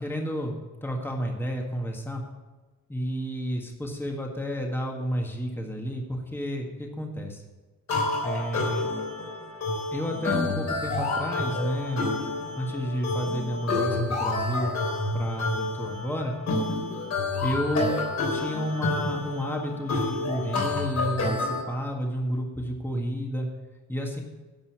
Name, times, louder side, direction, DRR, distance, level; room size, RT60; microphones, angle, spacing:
voice 1, 0.0-2.2 2.9-7.4 8.2-8.9 9.9-12.1 12.6-14.7 15.1-16.3 17.4-18.0 18.3-23.5 23.9-24.2, equal, 5° left, 1 dB, 1.7 m, -31 dB
sound 1, 7.9-21.6, left 3 dB, 65° left, 3.4 m, -29 dB
11.0 x 5.6 x 8.0 m, 1.2 s
cardioid pair, 90°, 30 cm